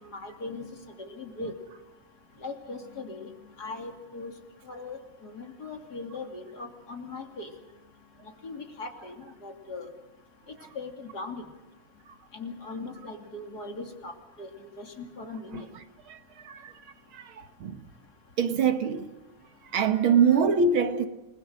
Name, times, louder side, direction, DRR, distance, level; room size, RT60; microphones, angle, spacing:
voice 1, 0.0-0.7 1.0-1.5 2.4-3.3 3.6-4.3 4.7-7.5 8.4-9.1 9.4-9.9 10.7-11.4 12.3-14.1 14.4-15.6, left 3 dB, 50° left, 3.3 m, -39 dB
voice 2, 18.4-19.1 19.7-21.1, right 6 dB, 85° right, 2.3 m, -24 dB
28.5 x 21.0 x 6.5 m
omnidirectional pair, 2.2 m